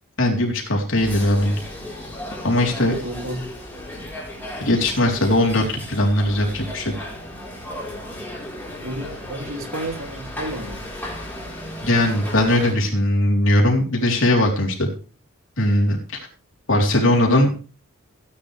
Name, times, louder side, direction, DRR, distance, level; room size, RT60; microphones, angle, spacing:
voice 1, 0.2-1.6 2.4-2.9 4.6-6.9 11.8-14.9 15.6-16.0 16.7-17.5, left 1 dB, 60° left, 0 dB, 3.7 m, -19 dB
sound 1, 0.9-12.7, left 1 dB, 10° left, 4.2 m, -35 dB
voice 2, 2.6-3.5 8.8-10.8, right 1 dB, 65° right, 4 dB, 2.7 m, -32 dB
16.5 x 10.5 x 3.4 m, 0.37 s
head